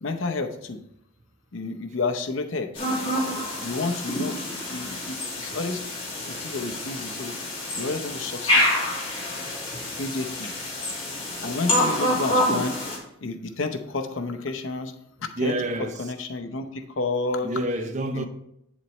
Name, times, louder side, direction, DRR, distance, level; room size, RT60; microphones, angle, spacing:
voice 1, 0.0-0.8 1.5-2.7 3.6-4.4 4.7-5.8 6.3-7.4 7.8-8.6 9.9-10.5 11.4-12.8 13.2-14.9 15.2-15.6 16.0-17.5 18.1-18.3, left 3 dB, 80° left, 0.8 m, -30 dB
sound 1, 2.8-13.0, left 1 dB, 30° left, 2.3 m, -27 dB
voice 2, 15.4-16.0 17.4-18.3, right 1 dB, 35° right, 0.7 m, -28 dB
8.4 x 7.3 x 3.2 m
head